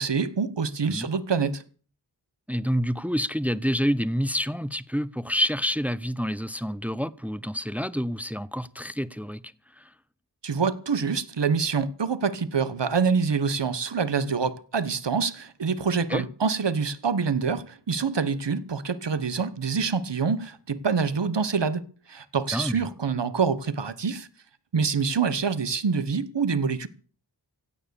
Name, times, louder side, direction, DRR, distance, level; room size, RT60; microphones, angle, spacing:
voice 1, 0.0-1.6 10.4-21.8 22.1-24.3 24.7-26.9, right 5 dB, 80° right, 1.2 m, -26 dB
voice 2, 2.5-9.9 16.1-16.2 22.5-22.9, equal, 5° right, 0.7 m, -28 dB
16.0 x 9.4 x 6.9 m
wide cardioid pair, 50°, 42 cm